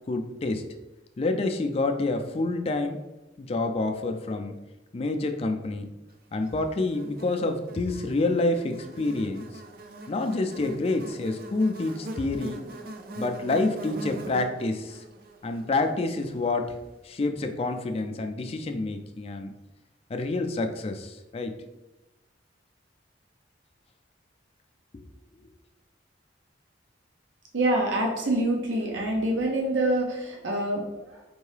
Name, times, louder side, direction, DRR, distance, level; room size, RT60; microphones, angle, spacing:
voice 1, 0.1-0.6 1.2-3.0 3.4-4.5 4.9-5.9 6.3-9.5 10.1-12.6 13.2-15.0 15.4-16.8 17.0-19.5 20.1-21.5, left 2 dB, 30° left, 6 dB, 0.3 m, -28 dB
Buzz, 6.4-16.9, right 1 dB, 50° right, 0.4 m, -42 dB
voice 2, 27.5-31.2, right 1 dB, 85° right, 0 dB, 0.7 m, -26 dB
4.5 x 2.7 x 3.3 m, 1.0 s
head